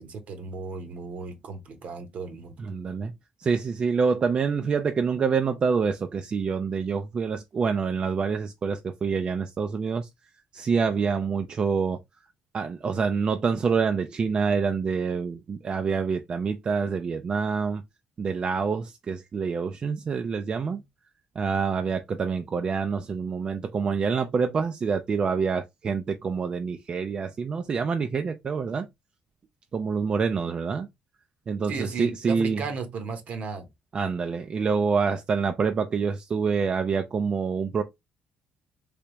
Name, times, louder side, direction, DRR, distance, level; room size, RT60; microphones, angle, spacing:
voice 1, 0.0-2.5 31.7-33.7, right 4 dB, 60° right, 1.0 m, -35 dB
voice 2, 2.6-3.1 3.4-10.1 10.5-12.0 12.5-17.8 18.2-20.8 21.4-28.9 29.7-30.9 31.5-32.6 33.9-37.8, right 5 dB, 40° right, 0.4 m, -26 dB
3.4 x 2.9 x 2.9 m
cardioid pair, 100°, 3 cm